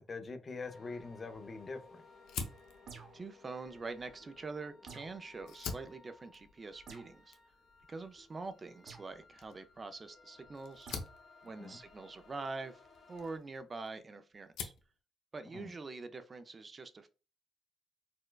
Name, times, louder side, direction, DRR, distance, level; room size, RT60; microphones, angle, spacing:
voice 1, 0.1-2.0 11.6-11.8 15.5-15.7, left 4 dB, 35° left, 0.5 m, -43 dB
sound 1, 0.6-13.4, left 3 dB, 65° left, 1.2 m, -60 dB
Fire, 2.3-4.9 5.3-14.0 14.3-14.9, left 6 dB, 85° left, 0.5 m, -47 dB
sound 2, 2.9-3.3 4.9-5.2 6.9-7.2 8.9-9.1 10.9-11.1, right 5 dB, 65° right, 0.8 m, -51 dB
voice 2, 3.1-7.4 7.9-10.9 11.4-12.8 13.1-14.7 15.3-17.1, right 3 dB, 30° right, 0.3 m, -45 dB
4.3 x 2.2 x 2.2 m
cardioid pair, 90°, 0 cm